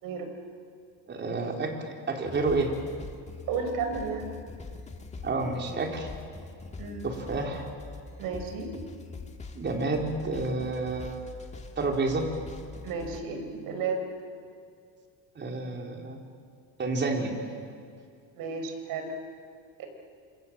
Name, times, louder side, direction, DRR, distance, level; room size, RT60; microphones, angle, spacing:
voice 1, 1.1-2.7 5.2-6.1 7.0-7.7 9.5-11.2 11.8-12.3 15.4-16.2 16.8-17.3, right 3 dB, 30° right, 2 dB, 4.3 m, -29 dB
sound 1, 2.2-13.2, left 4 dB, 20° left, 2.0 m, -43 dB
voice 2, 3.5-4.3 6.8-7.0 8.2-8.7 12.8-14.0 18.4-19.1 19.8-19.9, right 5 dB, 60° right, 5 dB, 5.4 m, -33 dB
27.5 x 26.5 x 7.7 m, 2.3 s
cardioid pair, 130°, 38 cm